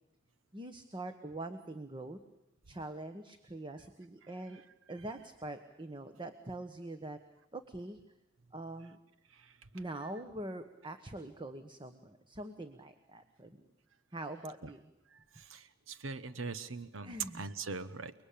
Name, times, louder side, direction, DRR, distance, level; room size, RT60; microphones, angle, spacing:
voice 1, 0.5-2.2 2.7-4.6 4.9-7.2 7.5-8.0 8.5-9.0 9.7-13.6 14.1-14.9 17.0-17.5, right 2 dB, 25° right, 9 dB, 1.4 m, -44 dB
voice 2, 15.4-18.1, right 4 dB, 90° right, 13 dB, 1.2 m, -41 dB
29.5 x 21.0 x 8.7 m, 0.89 s
head